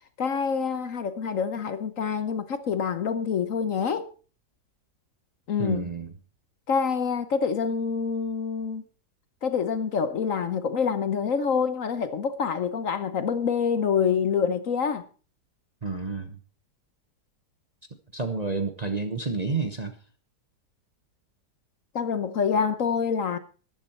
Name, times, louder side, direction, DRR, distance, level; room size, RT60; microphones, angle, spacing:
voice 1, 0.2-4.1 5.5-5.9 6.7-8.8 9.4-15.0 21.9-23.4, left 6 dB, 55° left, 1.2 m, -26 dB
voice 2, 5.6-6.1 15.8-16.4 18.1-20.0, right 4 dB, 30° right, 0.9 m, -30 dB
13.5 x 11.0 x 4.4 m
omnidirectional pair, 1.8 m